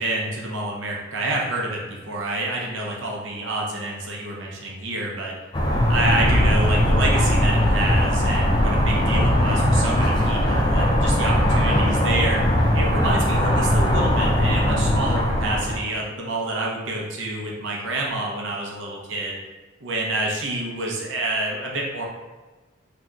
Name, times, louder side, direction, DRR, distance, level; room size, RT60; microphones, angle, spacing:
voice 1, 0.0-5.3 5.9-12.4 12.7-19.4 19.8-22.0, right 2 dB, 65° right, -2 dB, 0.7 m, -28 dB
sound 1, 5.5-15.8, left 1 dB, 20° left, 0.4 m, -20 dB
4.0 x 2.8 x 2.3 m, 1.2 s
head